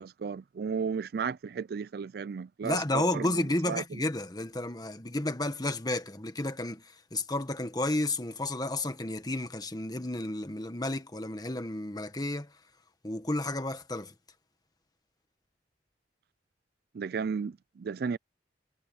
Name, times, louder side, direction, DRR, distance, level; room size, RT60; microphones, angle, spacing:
voice 1, 0.0-3.8 16.9-18.2, right 6 dB, 60° right, 0.4 m, -34 dB
voice 2, 2.6-12.5 13.0-14.1, left 2 dB, 20° left, 1.6 m, -32 dB
head